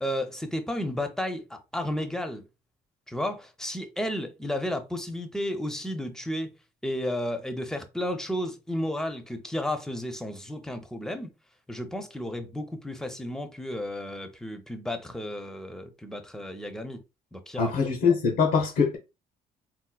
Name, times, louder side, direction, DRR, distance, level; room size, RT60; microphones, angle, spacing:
voice 1, 0.0-2.4 3.1-6.5 6.8-11.3 11.7-17.0 17.3-17.7, left 1 dB, 5° left, 0.5 m, -32 dB
voice 2, 17.6-19.0, left 5 dB, 90° left, 0.9 m, -23 dB
4.3 x 2.1 x 2.3 m
cardioid pair, 110°, 17 cm